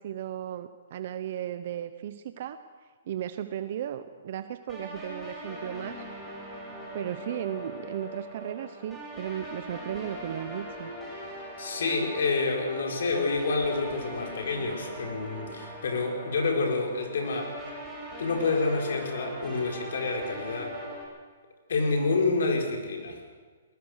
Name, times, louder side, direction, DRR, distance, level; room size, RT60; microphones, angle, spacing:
voice 1, 0.0-2.6 3.1-6.0 6.9-10.9, right 10 dB, 55° right, 11 dB, 0.9 m, -35 dB
sound 1, 4.7-21.0, equal, 5° left, 7.7 m, -41 dB
voice 2, 11.6-17.5 18.2-20.8 21.7-23.2, left 3 dB, 70° left, 1 dB, 4.8 m, -28 dB
20.5 x 20.0 x 6.6 m, 1.4 s
hypercardioid pair, 145°, 0 cm